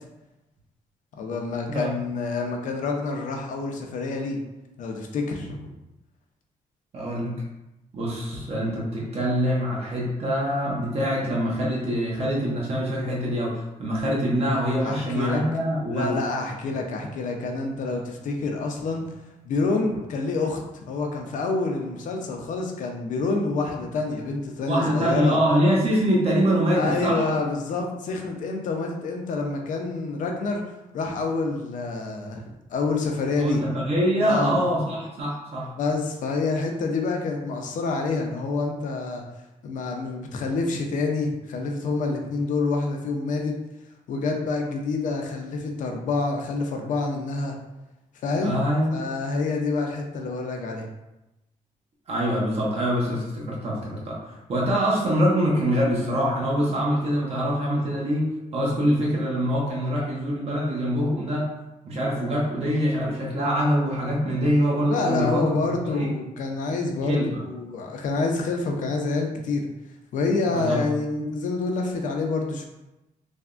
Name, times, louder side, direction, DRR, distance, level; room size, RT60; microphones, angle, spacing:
voice 1, 1.2-4.4 4.8-5.6 14.8-15.4 15.9-19.1 19.5-25.4 26.7-30.6 30.9-32.4 32.7-33.6 34.2-34.6 35.8-39.2 39.6-43.5 44.1-47.5 48.2-48.6 48.9-50.9 64.9-69.7 70.1-72.7, left 3 dB, 70° left, 2 dB, 0.5 m, -27 dB
voice 2, 6.9-7.3 7.9-16.2 24.7-27.3 33.4-35.7 48.4-49.1 52.1-61.5 61.8-65.6 65.8-66.1 67.1-67.4 70.5-70.8, equal, 50° right, -4 dB, 0.7 m, -24 dB
3.3 x 2.1 x 2.4 m, 0.96 s
cardioid pair, 140°, 14 cm